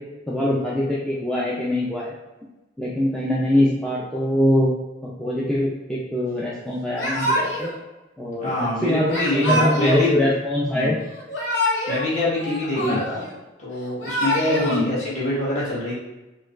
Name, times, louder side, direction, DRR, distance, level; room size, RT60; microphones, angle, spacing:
voice 1, 0.3-2.1 2.8-4.7 5.2-7.7 8.2-8.5 8.8-11.0 12.8-13.0 14.7-14.9, left 1 dB, 5° left, -7 dB, 0.3 m, -23 dB
Yell / Crying sobbing, 7.0-7.8 9.1-10.1 11.1-12.0 12.3-13.3 13.8-14.8, left 1 dB, 70° left, 0.8 m, -25 dB
voice 2, 8.4-10.1 10.7-11.0 11.9-13.2 13.6-16.0, left 1 dB, 40° left, -8 dB, 1.4 m, -25 dB
4.5 x 2.2 x 2.4 m, 1.1 s
head